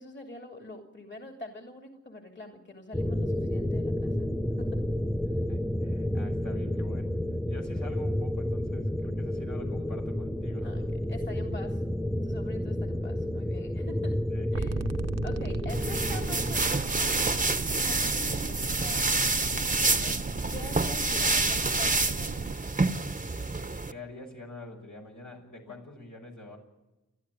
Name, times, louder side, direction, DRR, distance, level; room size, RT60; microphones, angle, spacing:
voice 1, 0.0-4.3 4.6-4.7 10.6-10.8 11.1-11.8 12.2-14.2 14.5-14.7 15.2-19.1 20.5-22.7 25.7-25.9, left 1 dB, 35° left, 3 dB, 2.8 m, -45 dB
sound 1, 2.9-16.7, left 1 dB, ahead, 0.7 m, -30 dB
voice 2, 5.5-7.1 7.5-10.7 14.3-14.5 19.8-20.3 23.9-26.6, left 2 dB, 80° left, 0 dB, 6.1 m, -45 dB
sound 2, 14.5-22.6, right 5 dB, 55° right, 0.9 m, -37 dB
sound 3, 15.7-23.9, right 3 dB, 25° right, 0.9 m, -28 dB
29.5 x 11.5 x 9.1 m, 1.0 s
wide cardioid pair, 50°, 31 cm